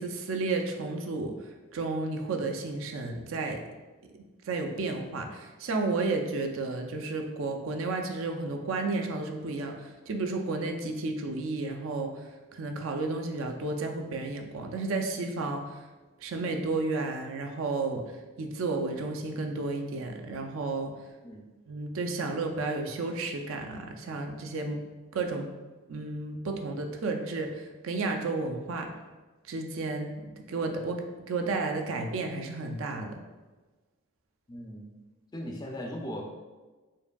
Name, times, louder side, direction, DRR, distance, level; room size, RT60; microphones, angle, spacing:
voice 1, 0.0-1.3 1.7-3.6 4.5-12.1 12.5-15.8 16.2-18.0 18.4-20.9 21.7-24.8 25.1-25.5 25.9-28.9 29.5-30.2 30.5-33.2, right 3 dB, 75° right, 3 dB, 0.4 m, -32 dB
voice 2, 34.5-34.9 35.3-36.3, equal, 20° left, 1 dB, 0.3 m, -38 dB
4.5 x 2.6 x 2.2 m, 1.3 s
head